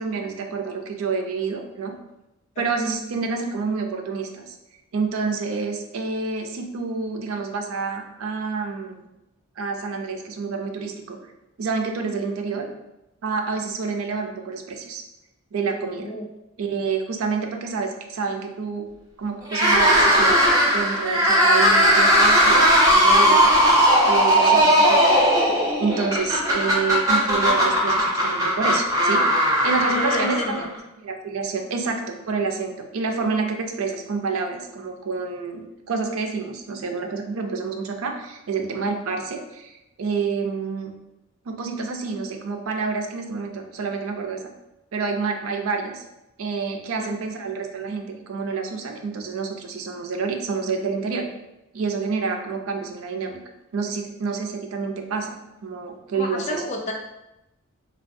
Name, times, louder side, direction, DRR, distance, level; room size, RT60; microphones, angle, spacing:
voice 1, 0.0-1.9 2.6-4.5 4.9-9.1 9.6-11.2 11.6-12.7 13.2-15.0 15.5-16.1 16.6-18.9 19.2-23.6 24.0-25.5 25.8-30.7 31.0-40.9 41.5-44.4 44.9-46.0 46.4-51.3 51.7-53.4 53.7-55.3 55.6-56.6, right 4 dB, 70° right, 4 dB, 0.4 m, -28 dB
sound 1, 19.5-30.8, equal, 15° right, 0.6 m, -18 dB
voice 2, 29.9-30.7 47.0-47.1 56.1-56.9, left 2 dB, 30° left, 2 dB, 0.3 m, -31 dB
3.3 x 2.3 x 2.6 m, 0.93 s
head